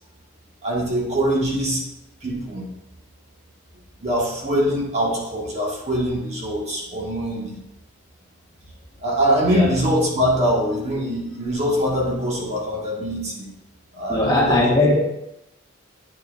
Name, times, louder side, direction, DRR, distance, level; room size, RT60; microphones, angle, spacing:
voice 1, 0.6-1.8 2.2-2.7 4.0-7.6 9.0-13.5 13.9-15.0, equal, 35° right, -4 dB, 1.9 m, -23 dB
voice 2, 14.1-15.0, left 2 dB, 20° left, -4 dB, 1.5 m, -18 dB
9.4 x 6.3 x 2.6 m, 0.85 s
head